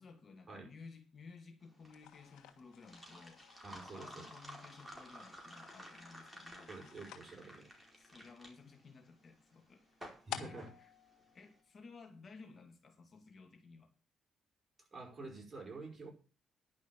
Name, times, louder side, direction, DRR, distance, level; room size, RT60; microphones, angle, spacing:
voice 1, 0.0-3.4 3.7-6.7 8.0-9.9 10.3-10.9 11.3-13.9, left 4 dB, 45° left, 5 dB, 2.3 m, -56 dB
sound 1, 1.6-11.5, equal, 5° right, 4.6 m, -54 dB
sound 2, 1.8-12.2, left 11 dB, 90° left, 1.6 m, -54 dB
voice 2, 3.6-4.3 6.7-7.7 10.3-10.7 14.8-16.1, right 3 dB, 30° right, 1 dB, 5.2 m, -48 dB
11.0 x 6.1 x 7.4 m, 0.34 s
cardioid pair, 90°, 0 cm